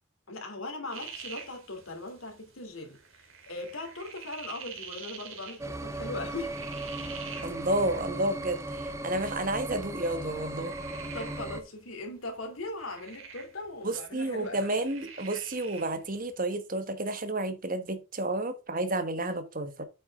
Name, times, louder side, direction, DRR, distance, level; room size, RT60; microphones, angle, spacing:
voice 1, 0.3-3.0 3.5-6.6 11.0-14.6, left 2 dB, 85° left, 2.9 m, -39 dB
sound 1, 0.9-16.3, right 6 dB, 80° right, 2.7 m, -48 dB
sound 2, 5.6-11.6, right 1 dB, 15° right, 0.8 m, -37 dB
voice 2, 7.4-10.7 13.8-19.8, right 1 dB, 40° right, 1.4 m, -31 dB
8.4 x 6.2 x 3.6 m
head